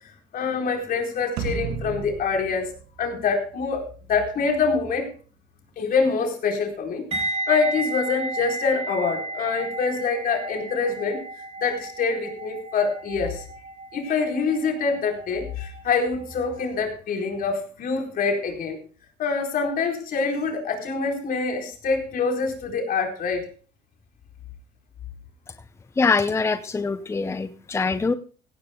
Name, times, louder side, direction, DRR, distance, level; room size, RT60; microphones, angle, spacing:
voice 1, 0.3-2.7 3.0-3.8 4.1-5.1 5.8-11.2 11.6-13.4 13.9-18.8 19.2-23.5, left 5 dB, 60° left, 3 dB, 4.3 m, -25 dB
sound 1, 1.4-3.8, right 6 dB, 90° right, 2.2 m, -33 dB
sound 2, 7.1-16.1 16.3-16.6, right 2 dB, 35° right, 5.4 m, -33 dB
voice 2, 26.0-28.1, left 4 dB, 15° left, 12 dB, 0.6 m, -23 dB
16.5 x 16.5 x 2.3 m, 0.37 s
cardioid pair, 110°, 17 cm